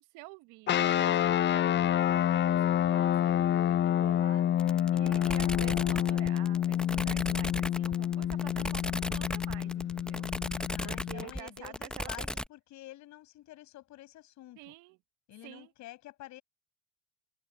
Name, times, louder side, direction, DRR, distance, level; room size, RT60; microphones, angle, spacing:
voice 1, 0.0-10.3 10.6-12.3 14.6-15.0 15.4-15.7, right 22 dB, 65° right, 1.3 m, -49 dB
sound 1, 0.7-11.3, left 11 dB, 35° left, 0.6 m, -28 dB
sound 2, 4.6-12.5, left 1 dB, 5° left, 0.8 m, -36 dB
voice 2, 10.7-14.7 15.3-16.4, left 15 dB, 60° left, 7.6 m, -49 dB
open air
hypercardioid pair, 75°, 33 cm